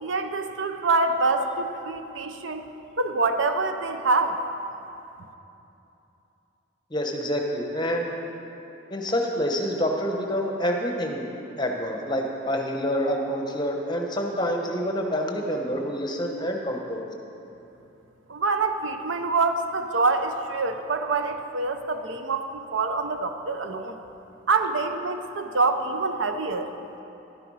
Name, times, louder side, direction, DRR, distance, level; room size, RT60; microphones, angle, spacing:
voice 1, 0.0-2.6 3.0-4.4 18.3-24.0 24.5-26.7, right 3 dB, 70° right, 7 dB, 0.7 m, -25 dB
voice 2, 6.9-8.1 8.9-11.2 11.6-17.0, equal, 20° left, 2 dB, 0.9 m, -27 dB
11.5 x 9.6 x 4.8 m, 2.9 s
head